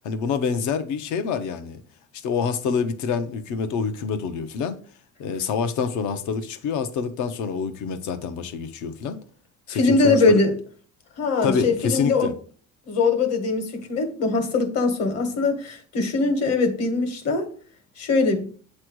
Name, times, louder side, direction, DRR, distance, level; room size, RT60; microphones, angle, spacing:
voice 1, 0.0-1.8 2.2-4.8 5.2-9.2 9.7-10.4 11.4-12.3, left 6 dB, 75° left, 1.0 m, -26 dB
voice 2, 9.7-10.5 11.2-12.3 12.9-17.5 18.0-18.5, left 3 dB, 55° left, 1.6 m, -21 dB
8.8 x 3.3 x 6.1 m
cardioid pair, 175°, 29 cm